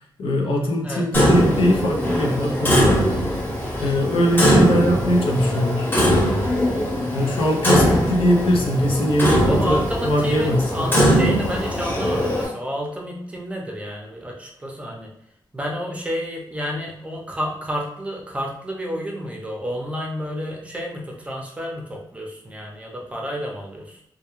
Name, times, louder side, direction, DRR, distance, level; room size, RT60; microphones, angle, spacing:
voice 1, 0.2-3.0 3.8-5.9 7.1-10.9, equal, 90° left, 0 dB, 0.5 m, -21 dB
Clock, 1.1-12.5, equal, 25° left, 0.8 m, -21 dB
voice 2, 9.5-15.1 15.5-24.0, equal, 15° right, -1 dB, 0.5 m, -30 dB
2.2 x 2.2 x 3.0 m, 0.75 s
wide cardioid pair, 125°, 9 cm